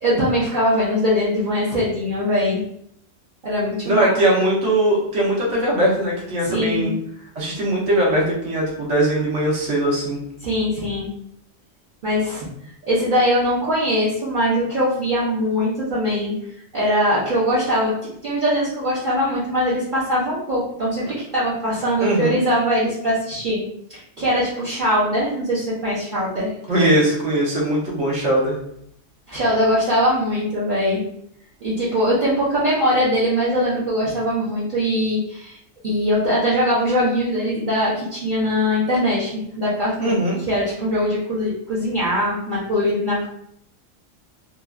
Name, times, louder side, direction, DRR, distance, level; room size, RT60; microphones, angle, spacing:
voice 1, 0.0-2.6 3.4-4.1 6.4-6.9 10.4-11.1 12.0-12.4 12.9-17.9 18.2-23.6 23.9-26.5 29.3-31.0 31.6-35.6 35.8-40.2 40.5-43.3, equal, 45° right, -9 dB, 0.9 m, -21 dB
voice 2, 3.8-6.9 7.3-10.2 22.0-22.3 26.7-28.6 40.0-40.4, right 1 dB, 75° right, -4 dB, 1.3 m, -20 dB
3.0 x 2.4 x 2.3 m, 0.72 s
omnidirectional pair, 1.3 m